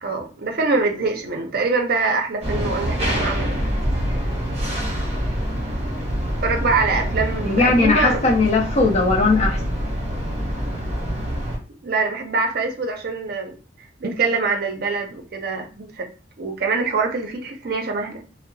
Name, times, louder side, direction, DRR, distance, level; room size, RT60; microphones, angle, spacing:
voice 1, 0.0-3.6 6.4-8.2 11.8-13.6 14.0-16.1 16.4-18.2, right 4 dB, 50° right, 0.5 m, -24 dB
sound 1, 2.4-11.6, equal, 35° right, 0.9 m, -25 dB
voice 2, 7.4-9.6, left 3 dB, 35° left, 0.5 m, -18 dB
2.7 x 2.0 x 2.6 m
head